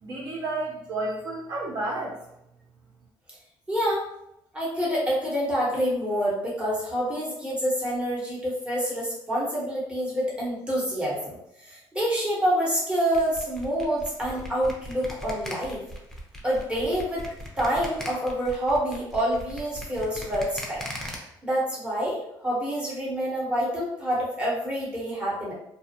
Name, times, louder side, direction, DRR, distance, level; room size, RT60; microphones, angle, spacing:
voice 1, 0.0-2.2, right 2 dB, 50° right, -3 dB, 0.5 m, -31 dB
voice 2, 3.7-4.0 4.5-15.8 16.4-17.3 17.6-20.8 21.4-25.5, equal, 10° right, -6 dB, 1.0 m, -27 dB
sound 1, 13.1-21.2, equal, 5° left, 0.5 m, -39 dB
2.5 x 2.2 x 2.7 m, 0.82 s
cardioid pair, 115°, 9 cm